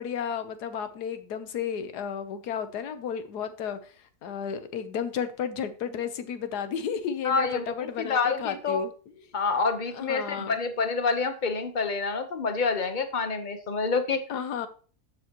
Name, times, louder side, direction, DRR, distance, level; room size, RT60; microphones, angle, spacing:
voice 1, 0.0-3.9 4.2-8.9 9.9-10.6 14.3-14.7, left 7 dB, 85° left, 10 dB, 1.5 m, -32 dB
voice 2, 7.2-8.8 9.3-14.2, left 4 dB, 35° left, 8 dB, 1.0 m, -27 dB
11.0 x 7.2 x 3.0 m, 0.40 s
omnidirectional pair, 1.7 m